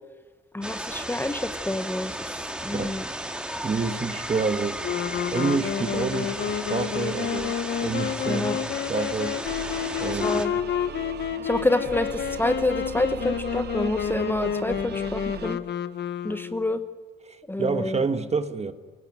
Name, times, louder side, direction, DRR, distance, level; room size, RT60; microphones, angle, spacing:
voice 1, 0.5-3.1 8.3-8.6 10.2-10.5 11.4-15.6 16.2-16.8 17.5-18.0, left 2 dB, 10° left, 1.0 m, -28 dB
sound 1, 0.6-10.5, right 1 dB, 5° right, 2.0 m, -34 dB
voice 2, 3.6-4.8 5.3-9.4 10.0-10.4 17.3-18.7, right 4 dB, 35° right, 1.5 m, -28 dB
sound 2, 4.8-16.7, left 9 dB, 60° left, 1.1 m, -30 dB
sound 3, 9.4-15.6, right 9 dB, 55° right, 1.0 m, -39 dB
24.0 x 18.0 x 9.2 m
cardioid pair, 90°, 20 cm